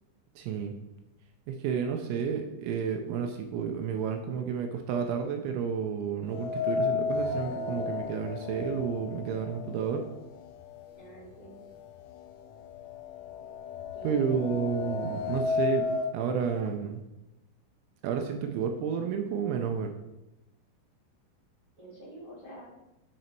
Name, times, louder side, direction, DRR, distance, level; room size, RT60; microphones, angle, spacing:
voice 1, 0.4-0.7 1.5-10.0 14.0-15.9 16.1-17.0 18.0-19.9, right 7 dB, 80° right, 5 dB, 2.9 m, -31 dB
sound 1, 6.3-10.4 10.7-10.8 11.8-11.9 12.3-16.1, left 5 dB, 85° left, 3.1 m, -33 dB
voice 2, 10.9-11.6 13.9-14.7 21.8-22.7, right 2 dB, 45° right, -9 dB, 1.2 m, -46 dB
9.4 x 4.0 x 4.5 m, 0.95 s
omnidirectional pair, 5.6 m